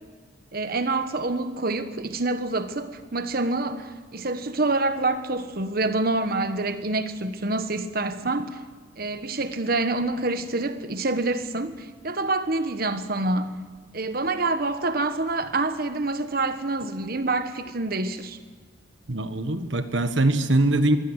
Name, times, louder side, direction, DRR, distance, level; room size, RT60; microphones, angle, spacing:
voice 1, 0.5-8.6 9.0-13.5 13.9-18.4, right 2 dB, 50° right, 1.3 m, -27 dB
voice 2, 19.1-21.0, right 2 dB, 70° right, 1.5 m, -22 dB
22.5 x 16.0 x 8.2 m
head